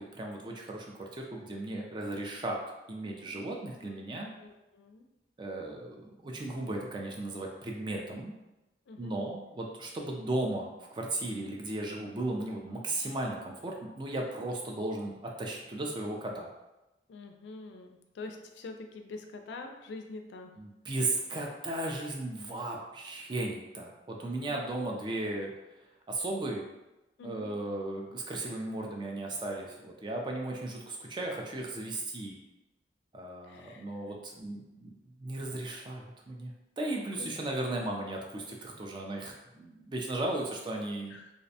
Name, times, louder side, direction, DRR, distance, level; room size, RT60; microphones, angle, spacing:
voice 1, 0.0-2.6 2.9-4.3 5.4-8.3 9.0-16.5 20.6-25.5 26.1-26.6 27.2-32.4 33.1-34.9 35.2-36.5 36.8-41.1, right 2 dB, 25° right, 0 dB, 0.3 m, -36 dB
voice 2, 4.4-5.1 8.9-9.2 17.1-20.5 27.2-27.6 33.4-34.0 37.2-37.3 41.1-41.3, left 3 dB, 75° left, 4 dB, 0.3 m, -45 dB
2.5 x 2.1 x 2.7 m, 0.98 s
head